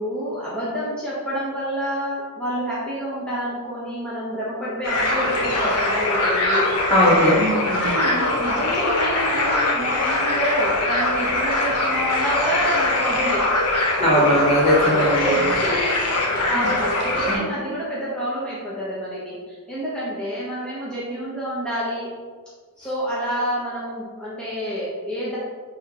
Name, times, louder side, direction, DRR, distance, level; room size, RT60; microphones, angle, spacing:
voice 1, 0.0-6.7 7.8-13.5 14.0-14.2 14.7-15.9 16.2-22.1 22.8-25.4, equal, 5° left, -10 dB, 1.3 m, -28 dB
sound 1, 4.8-17.4, left 2 dB, 90° left, 1.4 m, -22 dB
voice 2, 6.9-8.0 14.0-15.4 16.5-16.7 17.3-17.4, equal, 25° left, -6 dB, 1.7 m, -19 dB
9.8 x 3.6 x 3.1 m, 1.5 s
head